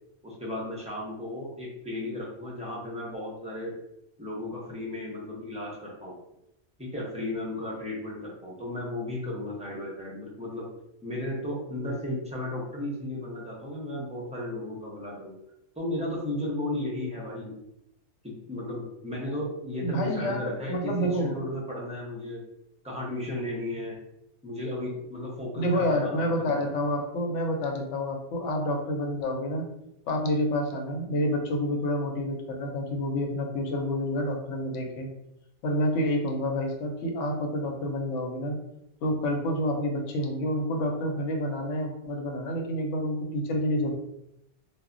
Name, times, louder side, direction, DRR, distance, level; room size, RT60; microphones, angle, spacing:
voice 1, 0.2-3.7 4.2-6.2 6.8-10.7 11.0-15.3 15.8-17.6 18.5-22.4 22.8-24.0 24.4-26.6, left 1 dB, 10° right, -4 dB, 0.4 m, -34 dB
voice 2, 19.8-21.4 25.6-29.6 30.1-35.1 35.6-38.6 39.0-43.9, equal, 85° left, 3 dB, 0.9 m, -28 dB
2.1 x 2.1 x 3.6 m, 0.82 s
omnidirectional pair, 1.2 m